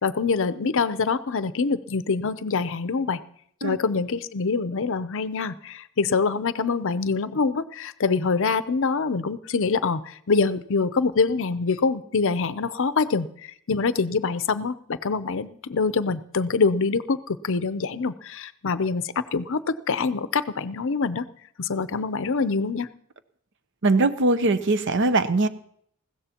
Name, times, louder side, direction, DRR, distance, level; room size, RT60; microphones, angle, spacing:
voice 1, 0.0-3.2 3.6-21.3 21.6-22.9, left 4 dB, 60° left, 13 dB, 0.6 m, -25 dB
voice 2, 23.8-25.5, right 2 dB, 55° right, 12 dB, 0.7 m, -21 dB
20.5 x 16.0 x 2.9 m, 0.67 s
head